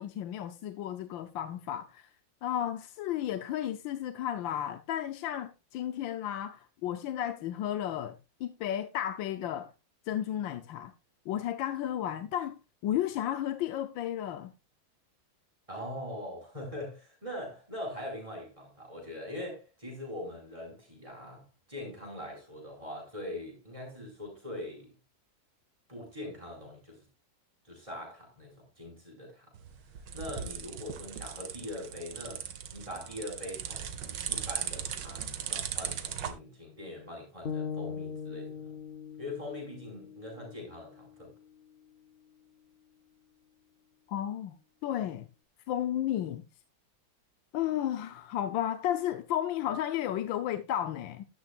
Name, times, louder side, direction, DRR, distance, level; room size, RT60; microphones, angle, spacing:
voice 1, 0.0-2.1 2.4-9.7 10.1-10.9 11.3-14.5 44.1-44.6 44.8-45.3 45.7-46.5 47.5-51.3, left 11 dB, 80° left, 1.5 m, -33 dB
voice 2, 15.7-24.9 25.9-27.0 27.6-29.5 29.9-32.4 32.7-38.7 39.2-41.3, left 1 dB, 15° right, 5.5 m, -42 dB
sound 1, 29.5-36.3, right 8 dB, 70° right, 1.8 m, -38 dB
sound 2, 37.4-41.6, left 6 dB, 60° left, 0.6 m, -41 dB
12.5 x 11.5 x 2.4 m
omnidirectional pair, 2.1 m